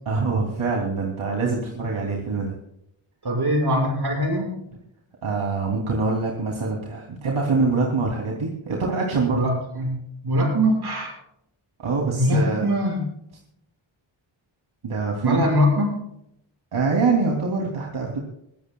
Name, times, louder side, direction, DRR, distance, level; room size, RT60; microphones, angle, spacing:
voice 1, 0.1-2.6 5.2-9.4 11.8-12.7 14.8-15.4 16.7-18.2, right 4 dB, 75° right, -2 dB, 3.0 m, -24 dB
voice 2, 3.2-4.6 9.3-11.1 12.0-13.0 15.2-16.0, equal, 50° right, 1 dB, 6.4 m, -22 dB
23.0 x 16.5 x 2.3 m, 0.76 s
wide cardioid pair, 95°, 49 cm